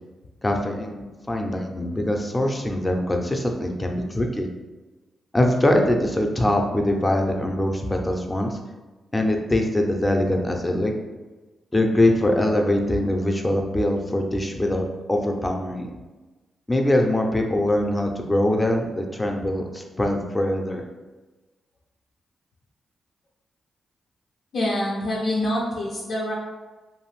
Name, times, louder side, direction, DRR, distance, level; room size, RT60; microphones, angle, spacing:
voice 1, 0.4-4.5 5.3-8.6 9.1-10.9 11.7-15.9 16.7-20.8, left 1 dB, 20° left, 2 dB, 0.5 m, -23 dB
voice 2, 24.5-26.3, left 1 dB, 70° left, -5 dB, 0.5 m, -25 dB
2.6 x 2.4 x 3.1 m, 1.2 s
hypercardioid pair, 40°, 0 cm